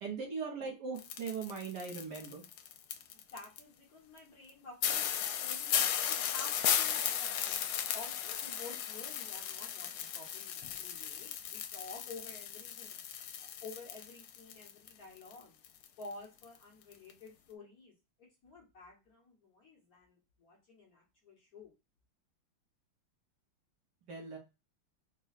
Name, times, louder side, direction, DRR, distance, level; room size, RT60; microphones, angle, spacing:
voice 1, 0.0-2.4 24.1-24.4, right 5 dB, 60° right, 1 dB, 1.4 m, -39 dB
sound 1, 1.0-3.6 4.2-4.3 4.5-4.6 4.8-14.9 15.2-16.1 16.4-16.6 16.9-17.1, left 9 dB, 90° left, 0.8 m, -36 dB
voice 2, 3.0-7.6 7.9-13.0 13.4-15.5 16.0-21.7, left 3 dB, 50° left, -2 dB, 1.4 m, -51 dB
4.1 x 2.2 x 3.9 m, 0.27 s
omnidirectional pair, 2.3 m